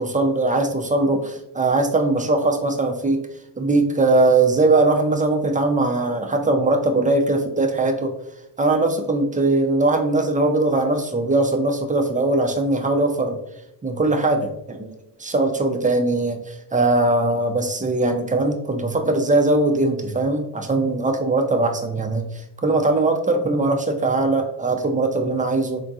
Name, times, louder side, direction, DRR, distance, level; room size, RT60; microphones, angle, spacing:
voice 1, 0.0-3.2 3.6-8.1 8.6-13.4 13.8-14.9 15.2-25.8, right 2 dB, 15° right, 4 dB, 0.5 m, -20 dB
3.7 x 2.4 x 2.6 m, 0.78 s
supercardioid pair, 65°, 47 cm